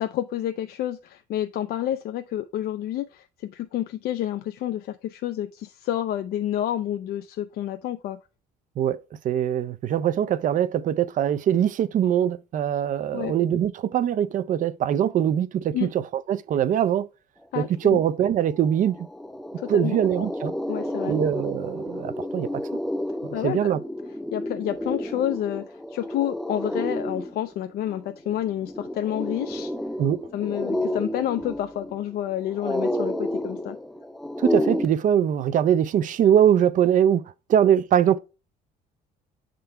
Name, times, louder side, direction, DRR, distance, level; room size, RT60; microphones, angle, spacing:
voice 1, 0.0-8.2 13.1-13.3 15.7-15.9 17.5-18.0 19.6-20.0 20.7-21.1 23.3-23.7 24.3-29.7 30.3-33.8, left 12 dB, 65° left, 0.5 m, -29 dB
voice 2, 9.2-17.1 17.6-19.0 19.7-20.5 21.0-22.6 23.4-23.8 30.0-30.2 34.4-38.2, right 9 dB, 50° right, 0.5 m, -22 dB
sound 1, 18.3-18.4 18.7-34.9, left 1 dB, ahead, 0.4 m, -31 dB
6.6 x 3.8 x 4.4 m
cardioid pair, 110°, 17 cm